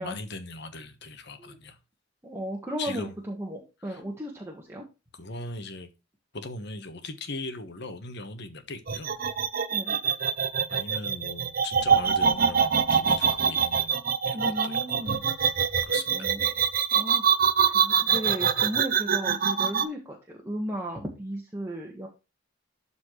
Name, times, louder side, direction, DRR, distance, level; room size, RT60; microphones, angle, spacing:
voice 1, 0.0-1.8 2.8-3.1 3.9-4.0 5.1-5.9 6.3-9.1 10.7-14.0 14.2-15.0 15.6-16.3, left 2 dB, 60° left, 1.3 m, -39 dB
voice 2, 2.2-4.8 9.7-10.0 14.3-15.2 16.1-16.5 16.9-17.2 17.7-22.1, equal, 15° right, 1.5 m, -35 dB
sound 1, 8.9-19.8, right 7 dB, 45° right, 0.8 m, -24 dB
12.5 x 4.2 x 3.2 m
head